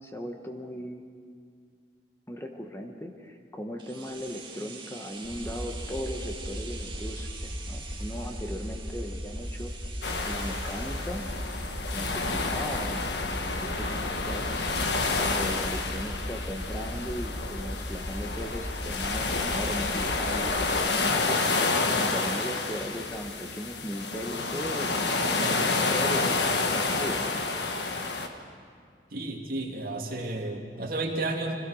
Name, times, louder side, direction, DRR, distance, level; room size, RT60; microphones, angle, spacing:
voice 1, 0.0-1.0 2.3-9.7 10.2-11.3 11.9-14.5 15.2-25.1 25.4-26.4 26.7-27.4, equal, 15° left, 3 dB, 1.2 m, -38 dB
sound 1, 3.8-13.6 13.9-14.0, right 5 dB, 25° right, 2.0 m, -46 dB
sound 2, 5.2-20.7, equal, 40° left, 2.6 m, -37 dB
sound 3, 10.0-28.3, left 3 dB, 70° left, 1.5 m, -29 dB
voice 2, 29.1-31.5, right 2 dB, 55° right, 1 dB, 2.5 m, -32 dB
25.5 x 17.0 x 6.4 m, 2.1 s
head